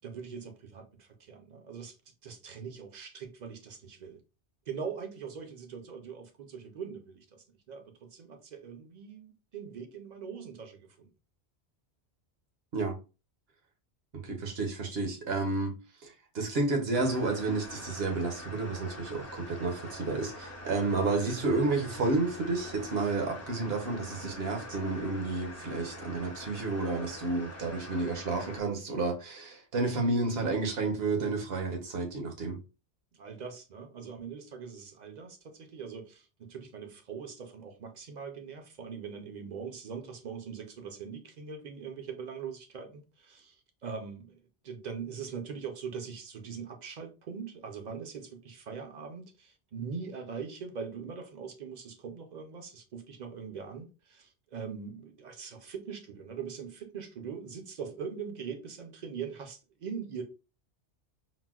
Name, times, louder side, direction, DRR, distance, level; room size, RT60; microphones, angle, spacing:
voice 1, 0.0-2.0 2.2-4.2 4.7-11.1 33.2-60.2, right 6 dB, 50° right, 0.6 m, -42 dB
voice 2, 14.1-15.7 16.0-32.6, right 3 dB, 70° right, 1.0 m, -31 dB
sound 1, 16.9-28.6, left 1 dB, 20° left, 0.4 m, -44 dB
3.9 x 2.1 x 2.3 m
omnidirectional pair, 1.1 m